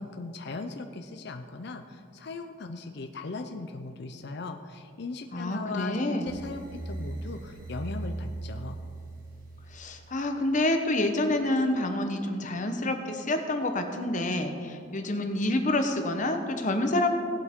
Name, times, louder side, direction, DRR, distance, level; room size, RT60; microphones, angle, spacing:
voice 1, 0.0-8.8, left 3 dB, 55° left, 6 dB, 0.5 m, -38 dB
voice 2, 5.3-6.4 9.7-17.1, left 1 dB, 40° left, 5 dB, 0.9 m, -28 dB
sound 1, 6.3-10.3, right 2 dB, 40° right, 1.6 m, -39 dB
17.5 x 8.1 x 3.7 m, 2.5 s
head